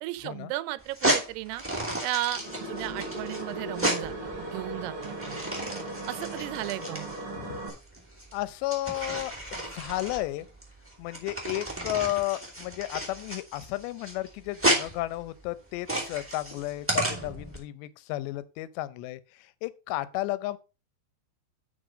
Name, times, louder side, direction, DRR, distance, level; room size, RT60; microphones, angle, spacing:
voice 1, 0.0-1.6 2.0-4.1 4.5-5.4 6.1-7.1, right 17 dB, 80° right, 2.5 m, -34 dB
sound 1, 0.8-17.6, right 1 dB, 5° right, 1.6 m, -32 dB
sound 2, 2.3-7.7, right 2 dB, 35° right, 3.4 m, -37 dB
voice 2, 8.3-10.5 11.0-20.6, left 16 dB, 85° left, 2.9 m, -33 dB
8.9 x 6.2 x 5.1 m
omnidirectional pair, 5.0 m